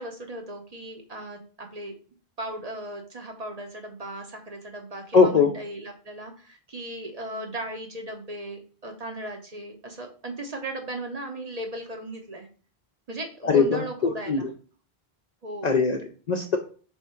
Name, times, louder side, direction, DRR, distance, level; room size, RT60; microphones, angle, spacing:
voice 1, 0.0-1.9 2.4-12.5 13.1-14.5 15.4-15.8, right 1 dB, 45° right, 3 dB, 0.7 m, -37 dB
voice 2, 5.1-5.5 13.4-13.8 14.3-14.5 15.6-16.6, left 5 dB, 55° left, 4 dB, 0.5 m, -20 dB
3.5 x 3.5 x 4.2 m, 0.39 s
omnidirectional pair, 1.1 m